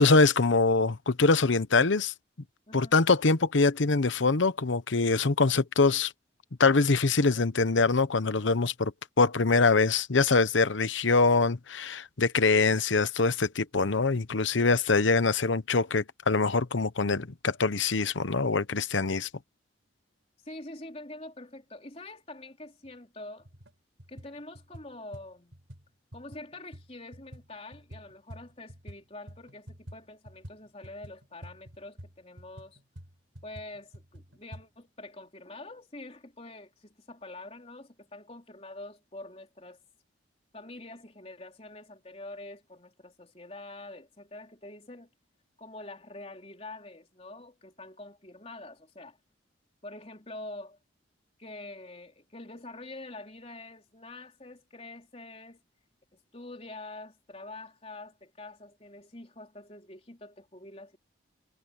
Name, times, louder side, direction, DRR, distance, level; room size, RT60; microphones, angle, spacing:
voice 1, 0.0-2.1 2.7-6.1 6.6-8.9 9.2-19.3, left 3 dB, 85° left, 1.0 m, -24 dB
voice 2, 20.4-23.5 24.1-25.6 26.1-32.8 33.4-39.8 40.5-45.1 45.6-49.2 49.8-50.8 51.4-55.6 56.1-61.0, left 2 dB, 30° left, 3.8 m, -45 dB
sound 1, 22.8-22.9 23.4-23.7 24.0-29.0 29.3-34.6, equal, 80° right, 4.7 m, -48 dB
head